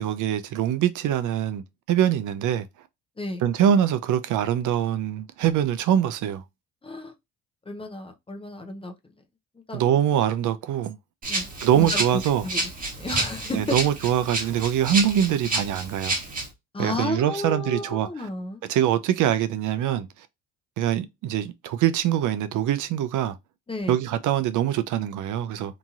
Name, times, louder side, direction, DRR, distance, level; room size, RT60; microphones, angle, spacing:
voice 1, 0.0-2.7 3.4-6.4 9.7-11.0 11.6-12.4 13.5-16.2 16.8-18.1 18.7-20.1 20.8-23.4 23.9-25.7, right 10 dB, 55° right, 0.5 m, -23 dB
voice 2, 6.8-7.1 7.7-8.9 9.5-10.0 11.3-12.6 13.0-13.8 16.7-18.6 23.7-24.0, left 2 dB, 15° left, 0.6 m, -32 dB
Rattle (instrument), 11.2-16.5, right 2 dB, 25° right, 1.2 m, -30 dB
2.9 x 2.6 x 2.3 m
cardioid pair, 100°, 36 cm